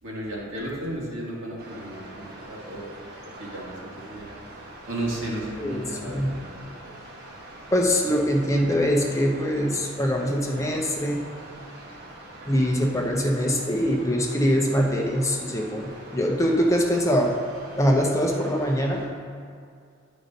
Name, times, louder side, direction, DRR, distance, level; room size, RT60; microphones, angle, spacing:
voice 1, 0.0-2.9 3.4-4.3 4.9-6.5, right 1 dB, 70° right, -5 dB, 2.0 m, -34 dB
sound 1, 1.6-19.1, right 1 dB, 50° right, 1.3 m, -43 dB
voice 2, 5.6-6.3 7.7-11.2 12.5-17.4 17.8-19.0, equal, 15° left, 0 dB, 0.7 m, -23 dB
10.5 x 5.1 x 4.1 m, 2.3 s
head